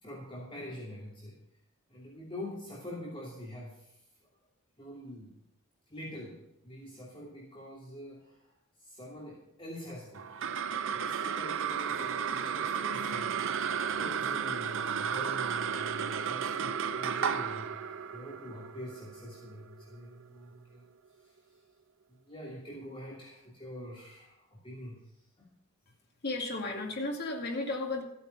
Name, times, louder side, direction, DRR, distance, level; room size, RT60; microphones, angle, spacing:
voice 1, 0.0-1.4 1.9-4.0 4.8-5.3 5.9-8.5 8.8-10.4 10.9-13.6 14.0-20.9 21.2-21.3 22.1-25.0 25.4-25.5, equal, 25° left, -5 dB, 2.8 m, -45 dB
sound 1, 10.2-20.8, right 7 dB, 65° right, 0.6 m, -33 dB
voice 2, 26.2-28.0, left 2 dB, 50° left, 1 dB, 2.2 m, -34 dB
14.5 x 8.9 x 5.3 m, 0.84 s
head